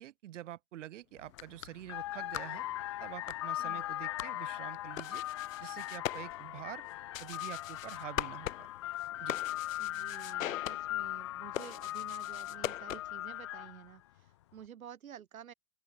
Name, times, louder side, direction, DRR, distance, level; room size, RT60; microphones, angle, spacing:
voice 1, 0.0-2.6 3.0-5.2 5.6-6.9 7.2-8.7 9.2-9.4, right 13 dB, 60° right, 2.7 m, -46 dB
sound 1, 1.2-13.3, left 11 dB, 70° left, 2.0 m, -43 dB
sound 2, 1.2-1.4 1.8-13.9, left 15 dB, 25° left, 0.4 m, -39 dB
voice 2, 9.8-15.5, right 9 dB, 80° right, 5.6 m, -51 dB
open air
hypercardioid pair, 145°, 42 cm